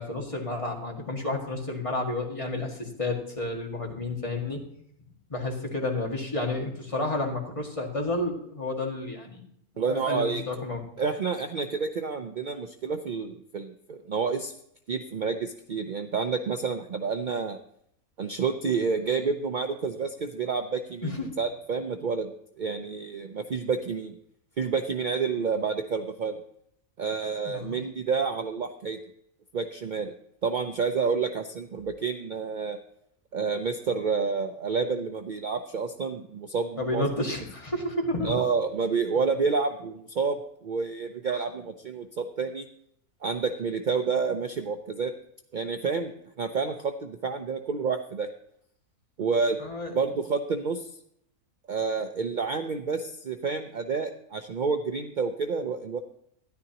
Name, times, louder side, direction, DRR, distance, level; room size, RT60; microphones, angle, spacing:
voice 1, 0.0-4.6 5.3-9.4 9.9-10.8 21.0-21.3 27.5-27.8 36.8-38.3 41.3-41.4 49.6-49.9, left 2 dB, 20° left, 0 dB, 1.8 m, -31 dB
voice 2, 9.8-10.4 11.0-14.5 14.9-17.6 18.2-24.2 24.6-26.4 27.0-29.0 29.5-30.1 30.4-32.8 33.3-37.0 38.2-42.7 43.2-45.1 45.5-48.3 49.2-49.6 49.9-50.9 51.7-56.0, right 5 dB, 65° right, 6 dB, 0.4 m, -29 dB
13.0 x 11.0 x 2.9 m, 0.70 s
omnidirectional pair, 1.6 m